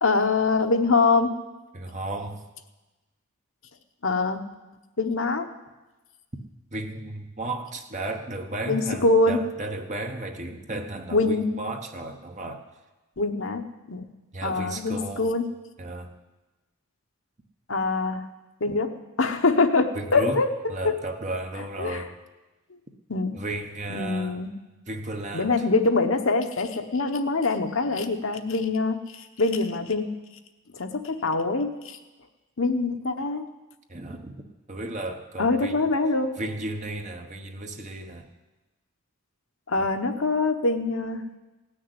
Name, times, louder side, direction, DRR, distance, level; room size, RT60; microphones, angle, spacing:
voice 1, 0.0-1.3 4.0-4.4 5.0-5.5 8.7-9.4 11.1-11.5 13.2-13.6 13.9-14.1 14.4-15.4 17.7-18.2 18.6-18.9 19.2-20.5 21.8-22.0 23.1-23.4 23.9-24.5 25.3-30.1 30.7-32.0 32.6-33.4 35.4-36.3 39.7-41.2, left 3 dB, 60° left, 6 dB, 1.0 m, -24 dB
voice 2, 1.7-2.4 6.7-12.6 14.3-15.3 15.8-16.1 19.9-20.4 20.7-22.1 23.3-24.4 24.9-25.5 33.9-34.4 34.7-35.9 36.4-38.3 39.7-39.9, right 2 dB, 35° right, 5 dB, 1.1 m, -34 dB
17.0 x 6.5 x 9.8 m, 1.1 s
head